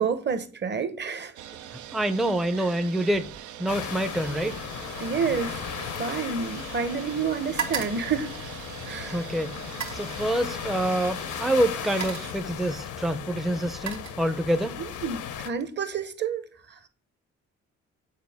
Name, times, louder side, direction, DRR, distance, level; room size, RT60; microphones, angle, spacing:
voice 1, 0.0-1.3 5.0-5.6 6.0-8.3 8.9-9.3 14.8-16.4 16.7-16.9, right 6 dB, 35° right, 0.8 m, -29 dB
sound 1, 1.4-12.3, right 11 dB, 85° right, 0.5 m, -42 dB
voice 2, 1.9-3.3 3.6-4.6 9.0-9.5 9.9-14.7, right 1 dB, ahead, 0.5 m, -26 dB
sound 2, 3.1-3.5 3.7-6.9 7.1-9.0 9.6-10.1 11.2-11.3 11.7-12.4 13.3-14.7 15.1-15.4, right 7 dB, 70° right, 1.4 m, -38 dB
sound 3, 3.7-15.5, left 9 dB, 80° left, 0.8 m, -36 dB
7.5 x 4.3 x 3.4 m
cardioid pair, 90°, 30 cm